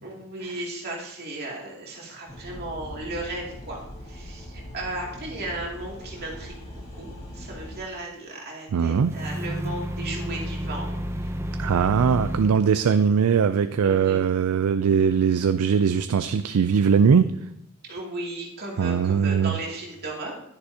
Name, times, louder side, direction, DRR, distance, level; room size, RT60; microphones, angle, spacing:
voice 1, 0.0-10.9 11.2-11.3 12.9-13.0 13.8-14.3 17.9-20.3, right 2 dB, 45° right, 2.5 m, -35 dB
sound 1, 2.3-7.8, equal, 30° left, 1.9 m, -41 dB
voice 2, 8.7-9.1 11.6-17.3 18.8-19.5, right 6 dB, 85° right, 0.4 m, -20 dB
sound 2, 8.9-12.6, equal, 10° right, 0.5 m, -31 dB
10.5 x 9.8 x 2.8 m
head